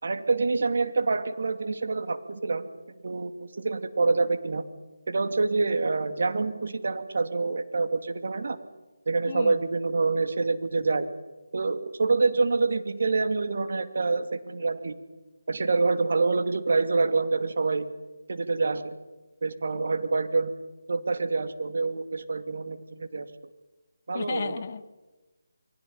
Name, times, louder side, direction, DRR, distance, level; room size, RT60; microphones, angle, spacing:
voice 1, 0.0-2.7 3.0-4.6 5.1-8.6 9.1-11.1 11.5-15.0 15.5-17.9 18.3-19.0 19.4-20.5 20.9-23.3 24.1-24.6, right 3 dB, 60° right, 8 dB, 2.5 m, -26 dB
voice 2, 9.3-9.6 24.1-24.8, left 6 dB, 40° left, 8 dB, 1.3 m, -33 dB
29.0 x 23.5 x 5.7 m, 1.1 s
figure-of-eight pair, 155°, 0 cm